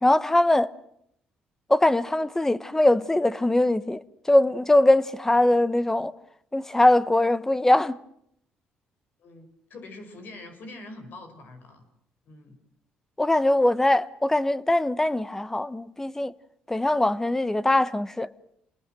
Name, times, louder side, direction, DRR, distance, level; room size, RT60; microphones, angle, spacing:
voice 1, 0.0-0.7 1.7-6.1 6.5-8.0 13.2-16.3 16.7-18.3, left 1 dB, 10° left, 1.1 m, -21 dB
voice 2, 9.2-11.8 12.3-12.6, left 2 dB, 60° left, 5.6 m, -44 dB
28.0 x 20.5 x 7.7 m
cardioid pair, 95°, 4 cm